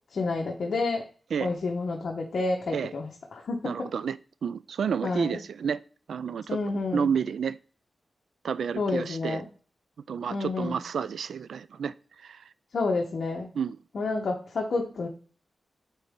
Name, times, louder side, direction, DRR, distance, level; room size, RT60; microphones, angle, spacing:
voice 1, 0.1-1.1 1.4-3.9 5.0-5.4 6.5-7.1 8.7-9.5 10.3-10.8 12.7-13.5 13.9-15.1, left 3 dB, 60° left, 1.1 m, -29 dB
voice 2, 3.6-5.8 6.1-6.6 6.9-7.6 8.4-9.4 10.1-12.4 13.5-13.8, right 7 dB, 85° right, 0.3 m, -30 dB
8.8 x 3.9 x 3.7 m
wide cardioid pair, 135°, 0 cm